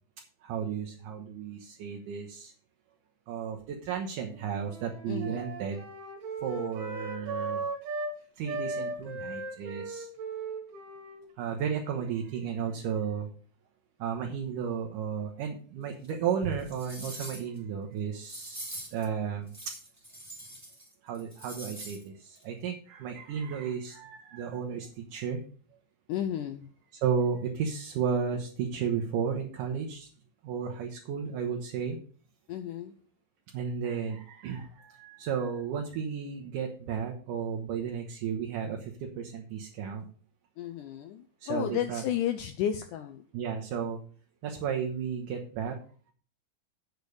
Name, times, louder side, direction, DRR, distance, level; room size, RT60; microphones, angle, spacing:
voice 1, 0.4-2.5 3.3-5.8 6.4-7.6 8.4-10.1 11.4-13.3 14.0-19.8 21.0-25.4 27.0-30.1 30.4-32.0 33.5-40.1 41.4-42.0 43.3-44.0 44.4-45.8, right 7 dB, 70° right, 2 dB, 2.4 m, -33 dB
Wind instrument woodwind instrument, 4.1-8.2 8.5-12.9, right 3 dB, 90° right, 3.9 m, -38 dB
voice 2, 5.1-5.5 26.1-26.7 32.5-32.9 40.6-43.2, left 10 dB, 90° left, 8 dB, 1.8 m, -33 dB
sound 1, 16.0-16.1 16.6-17.6 18.2-19.0 19.5-20.9 21.1-22.0 22.3-22.4, right 1 dB, 5° right, 2.1 m, -44 dB
8.2 x 6.9 x 6.4 m, 0.41 s
omnidirectional pair, 4.4 m